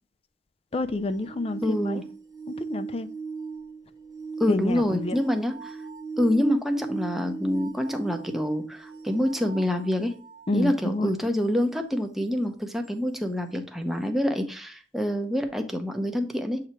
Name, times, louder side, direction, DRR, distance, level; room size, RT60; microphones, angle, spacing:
voice 1, 0.7-2.0 2.5-3.1 4.5-5.2 10.5-11.1, left 2 dB, 35° left, 10 dB, 0.4 m, -29 dB
sound 1, 0.8-10.5 12.8-12.9, right 4 dB, 25° right, 1.0 m, -39 dB
voice 2, 1.6-2.0 4.4-5.8 6.2-10.1 10.5-16.6, equal, ahead, 5 dB, 0.7 m, -26 dB
7.9 x 2.9 x 4.4 m, 0.40 s
head